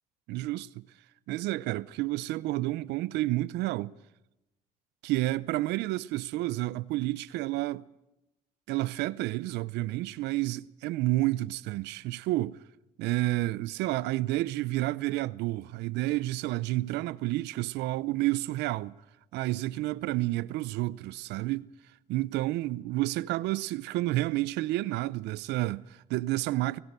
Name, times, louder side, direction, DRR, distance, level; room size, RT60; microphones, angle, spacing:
voice 1, 0.3-0.8 1.3-3.9 5.0-7.8 8.7-12.6 13.0-18.9 19.3-21.7 22.1-26.8, right 17 dB, 85° right, 0.6 m, -30 dB
24.5 x 18.0 x 6.8 m
cardioid pair, 110°, 17 cm